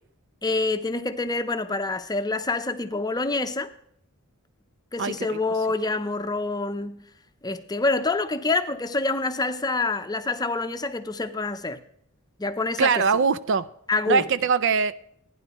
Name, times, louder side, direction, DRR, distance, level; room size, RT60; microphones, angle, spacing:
voice 1, 0.4-3.7 4.9-7.0 7.4-11.8 12.4-13.0 13.9-14.3, left 3 dB, 20° left, 0.7 m, -26 dB
voice 2, 12.8-13.7 14.1-15.0, right 5 dB, 60° right, 0.5 m, -22 dB
15.5 x 10.0 x 3.0 m
head